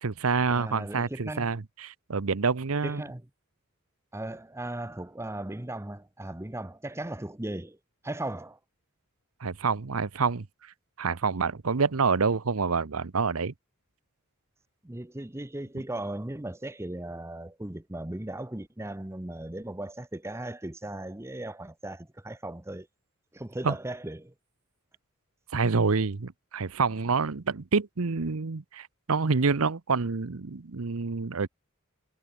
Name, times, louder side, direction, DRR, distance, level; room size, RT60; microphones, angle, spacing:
voice 1, 0.0-3.0 9.4-10.5 11.0-13.5 23.6-23.7 25.5-31.5, right 4 dB, 80° right, 0.8 m, -27 dB
voice 2, 0.5-1.5 2.8-3.2 4.1-7.8 8.0-8.6 14.8-22.9 23.3-24.3, right 1 dB, 10° right, 0.8 m, -37 dB
head